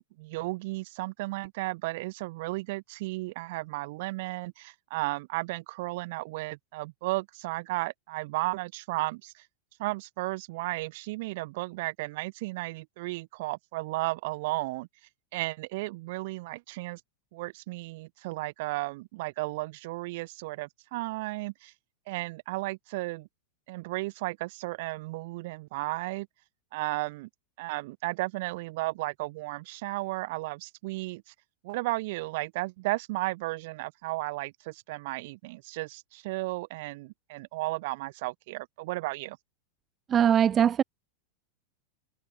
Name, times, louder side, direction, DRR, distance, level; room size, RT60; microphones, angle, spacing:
voice 1, 0.0-9.5 9.8-14.9 15.3-17.0 17.3-21.7 22.1-23.3 23.7-26.3 26.7-27.3 27.6-31.3 31.6-39.4, right 22 dB, 50° right, 5.3 m, -34 dB
voice 2, 40.1-40.8, right 9 dB, 25° right, 0.5 m, -21 dB
figure-of-eight pair, 90°, 0 cm